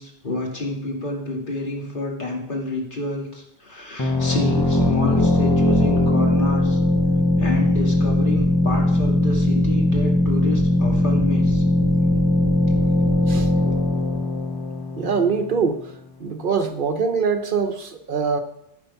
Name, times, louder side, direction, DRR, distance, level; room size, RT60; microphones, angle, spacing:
voice 1, 0.0-6.8 7.4-11.6, left 1 dB, 50° left, -1 dB, 2.6 m, -29 dB
sound 1, 4.0-15.5, left 1 dB, 20° left, 1.0 m, -19 dB
voice 2, 15.0-15.8 16.2-18.4, right 5 dB, 55° right, 6 dB, 1.0 m, -23 dB
13.5 x 6.7 x 5.6 m, 0.78 s
omnidirectional pair, 1.1 m